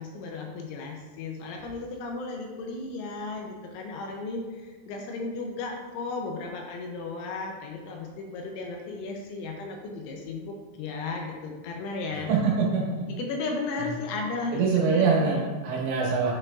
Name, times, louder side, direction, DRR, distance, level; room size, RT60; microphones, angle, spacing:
voice 1, 0.0-12.3 13.1-14.7 14.9-15.4, left 3 dB, 80° left, 1 dB, 3.0 m, -35 dB
voice 2, 12.3-13.1 13.8-13.9 14.5-16.3, right 5 dB, 70° right, -4 dB, 3.2 m, -24 dB
9.0 x 6.1 x 2.5 m, 1.3 s
omnidirectional pair, 5.7 m